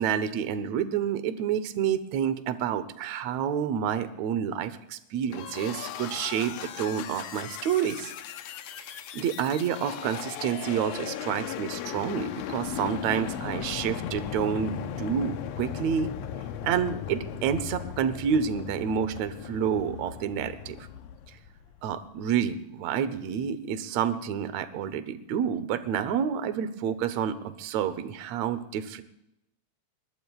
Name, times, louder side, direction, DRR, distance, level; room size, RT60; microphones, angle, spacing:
voice 1, 0.0-8.1 9.1-16.1 16.6-20.9 21.8-29.0, right 8 dB, 75° right, 12 dB, 2.1 m, -29 dB
sound 1, 5.3-21.9, left 9 dB, 75° left, 1.8 m, -37 dB
21.0 x 20.5 x 2.4 m, 0.84 s
omnidirectional pair, 3.3 m